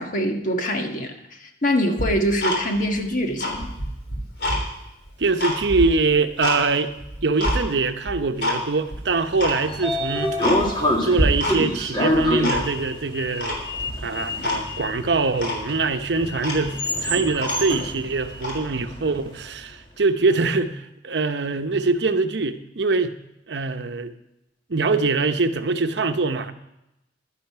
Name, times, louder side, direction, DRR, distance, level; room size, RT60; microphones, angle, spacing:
voice 1, 0.0-3.7, equal, 45° left, 4 dB, 1.5 m, -24 dB
Tick-tock, 2.0-3.0 3.3-4.6 5.1-6.6 7.0-7.6 8.1-8.6 8.9-9.0 9.4-9.6 10.0-10.1 10.4-10.9 11.2-11.8 12.1-12.9 13.4-14.0 14.4-14.6 15.0-15.1 15.4-15.6 16.1-16.2 16.4-17.9 18.3-18.6, left 1 dB, 70° left, 3.6 m, -26 dB
voice 2, 5.2-6.9 7.2-10.4 11.0-13.6 14.0-23.1 23.5-24.1 24.7-26.5, right 3 dB, 75° right, 9 dB, 0.8 m, -23 dB
Sliding door, 9.2-19.4, left 1 dB, 25° left, 1.9 m, -27 dB
11.5 x 10.5 x 5.8 m, 0.88 s
head